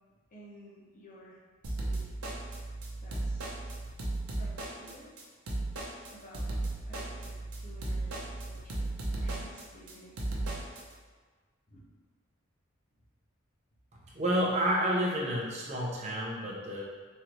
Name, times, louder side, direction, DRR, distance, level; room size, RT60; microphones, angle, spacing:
voice 1, 0.3-1.4 1.7-2.1 3.0-3.4 4.4-5.1 6.1-6.6 6.9-10.4 11.7-11.9, equal, 40° left, -5 dB, 0.8 m, -54 dB
sound 1, 1.6-10.8, right 2 dB, 90° right, 0.7 m, -35 dB
voice 2, 14.1-16.8, equal, 30° right, -4 dB, 0.6 m, -29 dB
3.7 x 3.1 x 3.0 m, 1.5 s
head